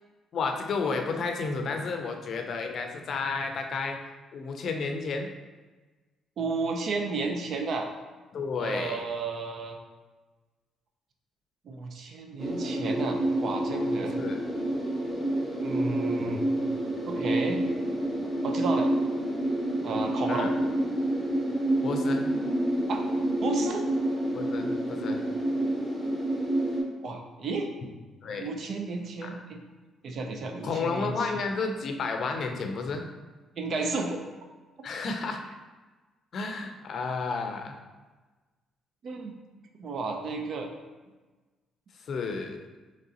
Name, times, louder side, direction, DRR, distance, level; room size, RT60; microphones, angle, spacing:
voice 1, 0.3-4.0 4.3-5.3 8.3-9.0 14.2-14.4 20.3-20.5 21.8-22.2 24.3-25.2 28.2-28.5 29.2-29.3 30.6-33.1 34.8-35.4 36.3-37.8 42.1-42.6, left 4 dB, 60° left, 4 dB, 0.5 m, -31 dB
voice 2, 6.4-7.9 8.6-9.8 11.6-14.2 15.6-16.5 17.1-17.7 18.4-18.9 19.8-20.6 22.9-23.0 23.4-23.9 27.0-27.7 28.4-29.6 30.0-31.3 33.6-34.3 39.0-39.3 39.8-40.7, right 3 dB, 60° right, 4 dB, 0.5 m, -32 dB
sound 1, 12.4-26.8, right 1 dB, 15° right, 1.4 m, -28 dB
3.8 x 3.2 x 2.8 m, 1.3 s
cardioid pair, 80°, 0 cm